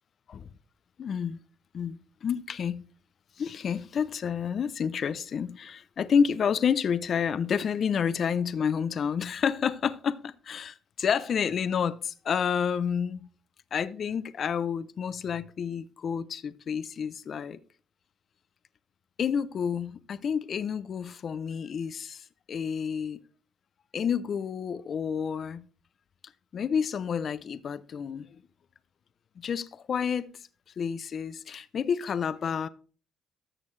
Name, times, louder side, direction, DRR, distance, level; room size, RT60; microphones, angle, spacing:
voice 1, 1.0-1.4 1.7-2.9 3.4-13.3 13.7-17.6 19.2-23.2 23.9-25.7 26.5-28.4 29.4-30.5 30.8-32.7, left 7 dB, 55° left, 0.5 m, -29 dB
13.5 x 6.5 x 3.2 m
cardioid pair, 90°, 0 cm